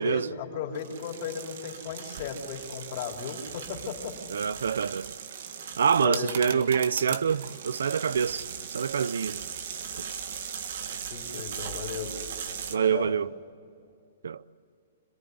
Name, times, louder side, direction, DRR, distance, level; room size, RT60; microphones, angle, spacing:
voice 1, 0.0-4.2 6.0-6.7 11.1-12.1 12.7-13.1, left 7 dB, 40° left, 3.9 m, -36 dB
sound 1, 0.8-12.8, right 7 dB, 60° right, 1.8 m, -38 dB
voice 2, 4.3-5.2 5.8-8.5 8.7-9.4 10.0-10.1 12.7-13.3 14.2-14.4, right 7 dB, 90° right, 0.7 m, -26 dB
27.5 x 19.0 x 9.6 m
hypercardioid pair, 160°, 0 cm